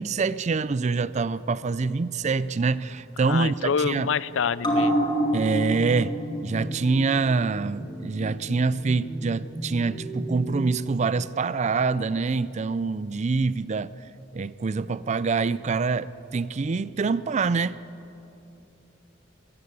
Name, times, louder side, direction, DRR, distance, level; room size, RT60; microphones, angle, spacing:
voice 1, 0.0-4.1 5.3-6.2 6.4-13.9 14.3-17.8, right 4 dB, 40° right, 0.4 m, -25 dB
voice 2, 3.2-5.1, left 6 dB, 80° left, 0.5 m, -27 dB
sound 1, 4.6-11.5 11.9-12.0, right 1 dB, 25° left, 2.8 m, -30 dB
21.0 x 16.0 x 8.1 m
head